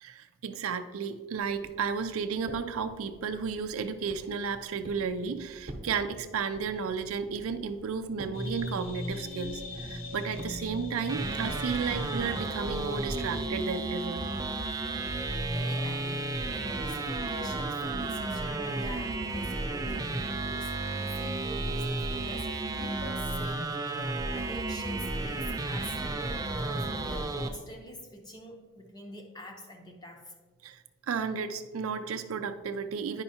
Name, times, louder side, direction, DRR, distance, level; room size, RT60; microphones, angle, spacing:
voice 1, 0.0-14.2 30.6-30.8 31.1-33.2, right 6 dB, 80° right, 8 dB, 0.4 m, -33 dB
Walk footsteps, 1.4-10.7, right 1 dB, 40° right, 0.9 m, -49 dB
sound 1, 8.3-13.5, left 1 dB, 70° left, 0.9 m, -39 dB
sound 2, 11.1-27.5, right 2 dB, 15° right, 0.4 m, -32 dB
voice 2, 15.2-22.5 22.8-30.3, equal, 20° left, 2 dB, 0.8 m, -45 dB
9.7 x 5.5 x 2.8 m, 1.4 s
head